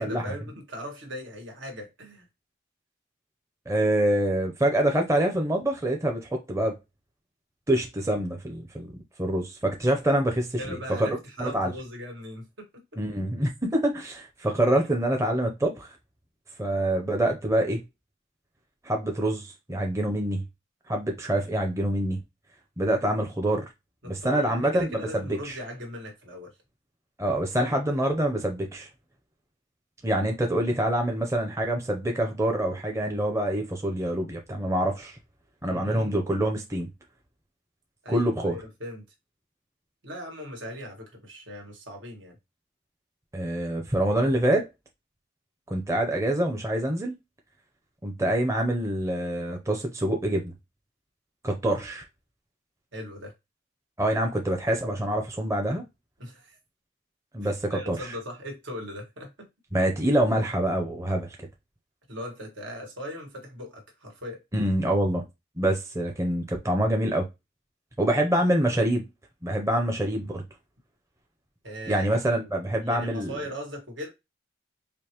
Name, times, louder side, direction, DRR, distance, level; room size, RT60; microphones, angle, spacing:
voice 1, 0.0-2.3 10.6-12.8 24.0-26.5 35.7-36.2 38.0-39.0 40.0-42.4 52.9-53.3 56.2-56.6 57.4-59.5 62.1-64.4 71.6-72.1 72.3-72.5 72.8-74.1, equal, 85° right, 1.6 m, -39 dB
voice 2, 3.7-6.7 7.7-8.9 9.2-11.7 13.0-15.9 16.6-17.8 18.8-20.4 20.9-22.2 22.8-23.7 24.1-25.6 27.2-28.9 30.0-35.2 35.6-36.9 38.1-38.6 43.3-44.6 45.7-47.1 48.0-50.5 51.4-52.0 54.0-55.8 57.3-58.0 59.7-61.3 64.5-65.2 65.6-67.3 68.0-69.1 69.4-70.4 71.9-73.3, right 1 dB, 15° right, 0.6 m, -26 dB
5.1 x 2.1 x 2.9 m
head